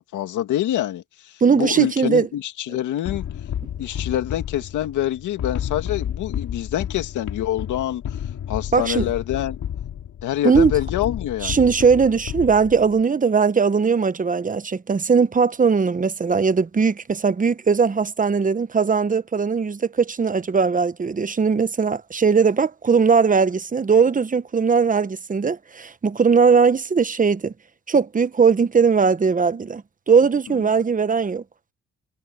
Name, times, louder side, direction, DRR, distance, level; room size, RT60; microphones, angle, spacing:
voice 1, 0.0-3.2 3.8-8.0 8.5-9.6 10.2-11.6 30.5-30.7, left 12 dB, 80° left, 2.3 m, -26 dB
voice 2, 1.4-2.3 8.7-9.1 10.4-10.7 11.4-27.5 27.9-31.4, right 5 dB, 25° right, 1.0 m, -19 dB
sound 1, 3.1-13.0, left 9 dB, 65° left, 2.4 m, -31 dB
cardioid pair, 90°, 30 cm